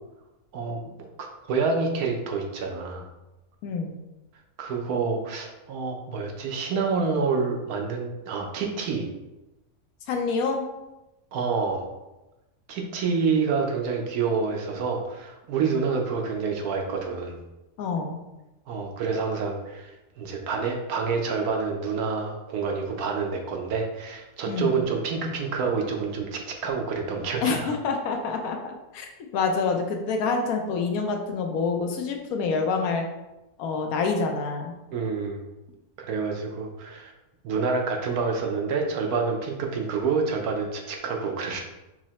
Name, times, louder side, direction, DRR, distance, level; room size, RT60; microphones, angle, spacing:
voice 1, 0.5-3.1 4.6-9.1 11.3-11.9 12.7-17.4 18.7-27.8 34.9-35.4 36.0-37.1 37.4-41.6, right 5 dB, 80° right, 2 dB, 1.2 m, -28 dB
voice 2, 3.6-4.0 10.1-10.6 17.8-18.2 24.5-24.8 27.4-33.0 33.6-34.7, left 4 dB, 75° left, 3 dB, 1.1 m, -27 dB
4.7 x 2.1 x 4.1 m, 0.99 s
omnidirectional pair, 1.6 m